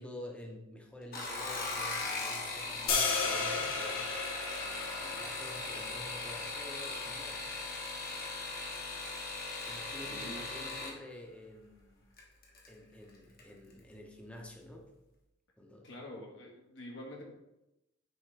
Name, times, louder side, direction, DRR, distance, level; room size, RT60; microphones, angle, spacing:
voice 1, 0.0-4.1 4.6-7.5 9.7-12.0 12.7-14.9 15.6-15.9, left 1 dB, 5° left, 0 dB, 0.8 m, -49 dB
sound 1, 1.0-11.0 12.2-12.7 13.1-13.5 13.8-13.9, left 3 dB, 45° left, 1.2 m, -39 dB
sound 2, 2.9-9.0, left 4 dB, 80° left, 1.1 m, -36 dB
voice 2, 10.0-10.4 15.8-17.2, left 1 dB, 60° left, -1 dB, 1.4 m, -46 dB
9.2 x 3.6 x 3.3 m, 0.92 s
head